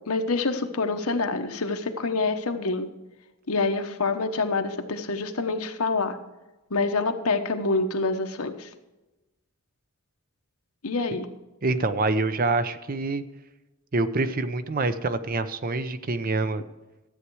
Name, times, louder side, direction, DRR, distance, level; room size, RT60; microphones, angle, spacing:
voice 1, 0.1-2.9 3.5-6.2 6.7-8.7 10.8-11.3, left 3 dB, 85° left, 6 dB, 1.1 m, -26 dB
voice 2, 11.6-13.2 13.9-16.6, right 3 dB, 40° right, 12 dB, 0.6 m, -26 dB
13.0 x 8.3 x 4.8 m, 1.1 s
head